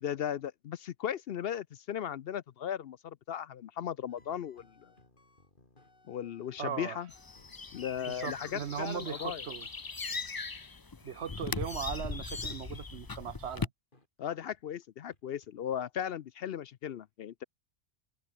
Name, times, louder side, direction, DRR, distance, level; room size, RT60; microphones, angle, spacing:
voice 1, 0.0-4.9 6.1-7.1 7.7-9.4 14.2-17.4, left 9 dB, 65° left, 0.8 m, -37 dB
sound 1, 4.1-6.7 6.9-9.7 10.1-10.2 10.5-10.6 11.0-11.5 11.9-12.1 12.4-12.5 12.8-13.4 13.9-14.1 14.5-14.6 15.1-15.8, left 2 dB, 45° left, 3.9 m, -64 dB
voice 2, 6.6-7.0 8.1-9.7 11.0-13.7, right 8 dB, 70° right, 1.2 m, -38 dB
sound 2, 7.1-13.7, left 4 dB, 25° left, 0.5 m, -39 dB
omnidirectional pair, 1.2 m